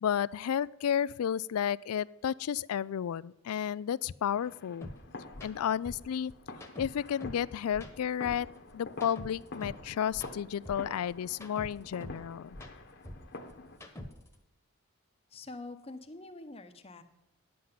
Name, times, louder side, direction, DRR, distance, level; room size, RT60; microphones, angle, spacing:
voice 1, 0.0-4.9 5.4-6.3 6.8-8.5 8.7-12.5, left 9 dB, 85° left, 21 dB, 0.4 m, -32 dB
sound 1, 4.4-13.8, left 2 dB, 50° left, 1.1 m, -48 dB
sound 2, 4.8-4.9 5.3-5.5 5.8-7.4 7.7-9.8 10.1-12.2 12.5-14.3, left 1 dB, 10° left, 1.2 m, -45 dB
voice 2, 15.3-17.0, left 2 dB, 25° left, 8 dB, 0.8 m, -45 dB
10.5 x 7.8 x 5.7 m, 0.96 s
head